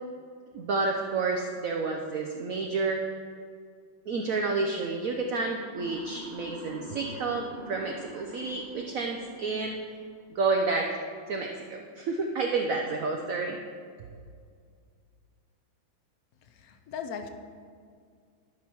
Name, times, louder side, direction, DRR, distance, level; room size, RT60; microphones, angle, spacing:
voice 1, 0.5-3.1 4.1-9.8 10.3-11.0 11.3-13.6, right 3 dB, 75° right, 2 dB, 0.7 m, -30 dB
Motor vehicle (road) / Siren, 5.8-9.9, right 1 dB, 40° right, 0.9 m, -44 dB
voice 2, 16.5-17.3, left 7 dB, 65° left, 6 dB, 0.9 m, -38 dB
12.0 x 5.8 x 4.5 m, 2.1 s
omnidirectional pair, 2.2 m